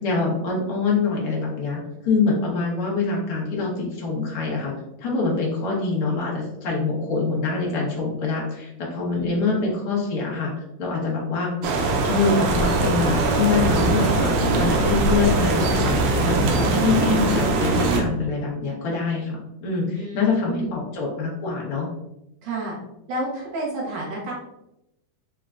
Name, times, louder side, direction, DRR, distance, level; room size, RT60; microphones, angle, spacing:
voice 1, 0.0-4.7 5.0-10.5 10.8-11.5 12.0-21.9, left 4 dB, 70° left, -3 dB, 1.3 m, -25 dB
voice 2, 9.1-9.5 20.0-20.7 22.4-22.8 23.1-24.3, right 2 dB, 65° right, -4 dB, 1.9 m, -30 dB
sound 1, 11.6-18.0, right 3 dB, 85° right, 2.4 m, -22 dB
sound 2, 12.4-17.5, left 2 dB, 50° left, 1.1 m, -29 dB
5.4 x 3.6 x 2.4 m, 0.86 s
omnidirectional pair, 3.9 m